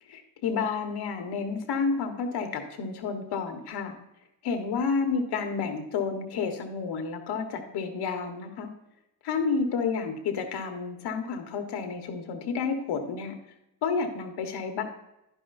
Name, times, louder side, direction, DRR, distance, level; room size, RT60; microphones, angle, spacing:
voice 1, 0.1-3.9 4.4-8.7 9.2-13.3 13.8-14.8, left 5 dB, 85° left, 5 dB, 1.4 m, -30 dB
11.0 x 9.8 x 2.6 m, 0.86 s
cardioid pair, 115°, 38 cm